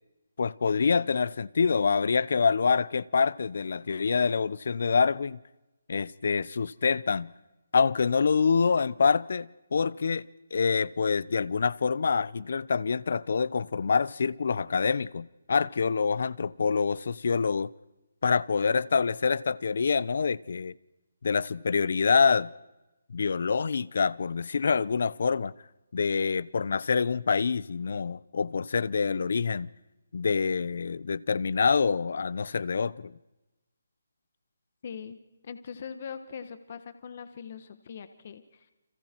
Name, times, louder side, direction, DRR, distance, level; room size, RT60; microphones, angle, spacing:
voice 1, 0.4-5.4 5.9-7.3 7.7-17.7 18.2-20.7 21.2-22.5 23.1-25.5 25.9-29.7 30.1-33.1, left 5 dB, 60° left, 0.7 m, -26 dB
voice 2, 34.8-35.2 35.4-38.7, left 7 dB, 40° left, 1.4 m, -41 dB
30.0 x 26.5 x 4.6 m
hypercardioid pair, 165°, 0 cm